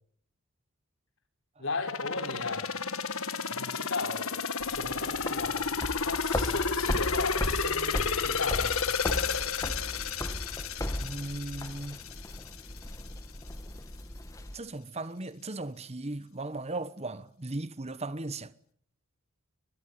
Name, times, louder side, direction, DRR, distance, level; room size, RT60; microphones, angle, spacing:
voice 1, 1.6-2.7 3.5-4.3 4.7-5.6 6.0-8.8, left 3 dB, 60° left, 4.7 m, -36 dB
sound 1, 1.9-12.6 13.0-13.1, left 5 dB, 80° left, 1.8 m, -32 dB
sound 2, 4.6-14.5, left 1 dB, 15° left, 1.4 m, -36 dB
voice 2, 11.0-12.0 14.5-18.5, right 2 dB, 30° right, 1.1 m, -37 dB
24.5 x 21.5 x 9.6 m
head